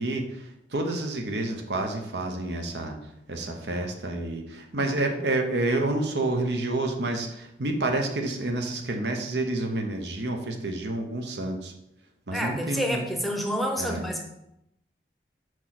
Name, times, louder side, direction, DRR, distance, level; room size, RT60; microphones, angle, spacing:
voice 1, 0.0-3.0 3.3-11.7 12.3-13.0 13.8-14.0, right 2 dB, 80° right, 4 dB, 1.0 m, -29 dB
voice 2, 12.3-14.2, equal, ahead, 1 dB, 0.7 m, -29 dB
4.8 x 4.5 x 5.9 m, 0.83 s
head